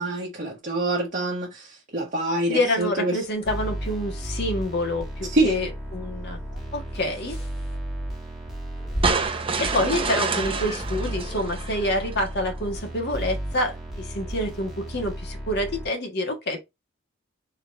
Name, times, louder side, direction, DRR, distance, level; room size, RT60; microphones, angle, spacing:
voice 1, 0.0-3.2 5.3-5.6, right 2 dB, 45° right, 1.1 m, -26 dB
voice 2, 2.5-6.4 6.7-7.4 9.6-16.6, left 1 dB, 55° left, 1.5 m, -27 dB
sound 1, 2.6-10.9, equal, 30° left, 1.5 m, -40 dB
sound 2, 3.5-15.9, right 1 dB, ahead, 1.6 m, -34 dB
sound 3, 9.0-12.3, right 4 dB, 25° right, 0.7 m, -28 dB
3.7 x 3.2 x 4.1 m
head